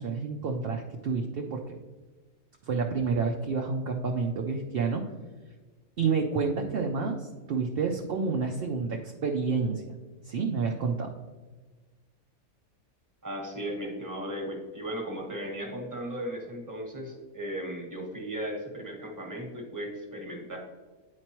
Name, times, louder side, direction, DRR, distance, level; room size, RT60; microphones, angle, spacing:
voice 1, 0.0-1.8 2.6-5.0 6.0-9.8 10.2-11.1, right 5 dB, 60° right, 2 dB, 0.6 m, -29 dB
voice 2, 13.2-20.6, equal, 15° right, 0 dB, 1.2 m, -36 dB
9.6 x 4.5 x 3.0 m, 1.3 s
omnidirectional pair, 1.5 m